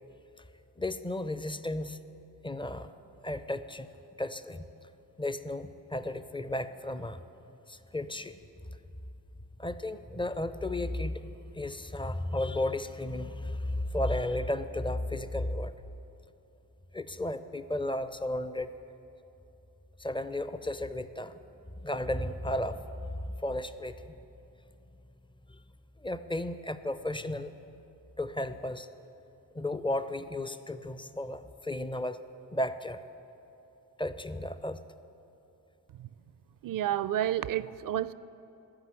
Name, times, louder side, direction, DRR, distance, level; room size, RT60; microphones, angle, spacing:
voice 1, 0.8-2.0 2.4-2.9 3.2-3.9 4.2-4.6 5.2-7.2 7.7-8.4 9.6-15.7 16.9-18.7 20.0-21.3 21.8-22.9 23.2-24.1 25.5-25.6 26.0-27.5 28.2-28.9 29.5-32.2 32.5-33.0 34.0-34.8, left 1 dB, 10° left, 12 dB, 0.4 m, -34 dB
voice 2, 36.6-38.1, right 12 dB, 45° right, 17 dB, 0.4 m, -30 dB
13.0 x 5.4 x 7.6 m, 2.9 s
hypercardioid pair, 40°, 48 cm